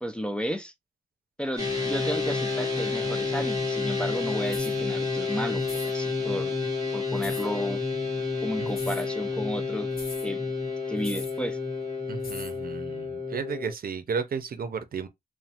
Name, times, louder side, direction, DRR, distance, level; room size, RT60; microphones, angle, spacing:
voice 1, 0.0-0.7 1.4-6.5 6.9-7.8 8.4-9.9 10.2-10.5 10.9-11.6, equal, 5° left, 0.4 m, -33 dB
sound 1, 1.6-13.7, left 4 dB, 25° right, 1.7 m, -30 dB
sound 2, 4.5-4.8 5.6-5.9 7.2-7.5 8.7-9.1 10.0-10.3 11.0-11.4 12.2-12.6, left 3 dB, 85° left, 1.0 m, -40 dB
voice 2, 12.1-15.1, right 5 dB, 75° right, 0.5 m, -33 dB
3.1 x 2.2 x 2.7 m
wide cardioid pair, 100°, 15 cm